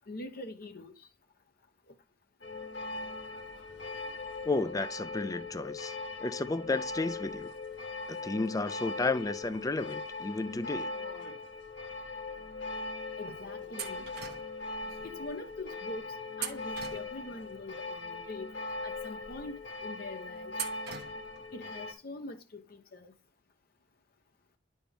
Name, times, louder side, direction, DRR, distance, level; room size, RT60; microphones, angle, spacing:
voice 1, 0.1-0.9 13.2-14.1 15.0-18.6 18.8-20.6 21.5-23.1, left 2 dB, 55° left, 0.9 m, -43 dB
sound 1, 2.4-21.9, left 3 dB, 75° left, 2.2 m, -40 dB
voice 2, 4.5-5.9 6.2-7.5 8.1-10.9, left 3 dB, 20° left, 0.5 m, -32 dB
sound 2, 13.8-14.7 16.3-17.5 20.5-21.4, right 9 dB, 60° right, 1.0 m, -41 dB
10.5 x 4.3 x 3.4 m
head